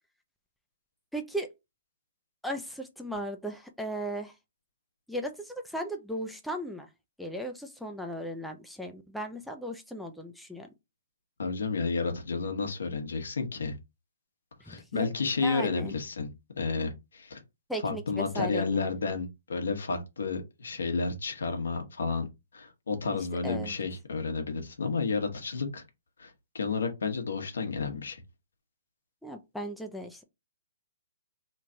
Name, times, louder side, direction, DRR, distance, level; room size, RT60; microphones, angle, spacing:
voice 1, 1.1-1.5 2.4-4.3 5.1-6.9 7.2-10.7 14.7-15.1 15.4-15.9 17.7-18.9 23.4-23.8 29.2-30.2, equal, ahead, 0.5 m, -36 dB
voice 2, 11.4-13.8 14.6-16.3 16.6-17.4 17.8-22.3 22.5-25.8 26.2-28.2, left 4 dB, 80° left, 1.1 m, -31 dB
3.2 x 2.4 x 4.3 m
hypercardioid pair, 140°, 0 cm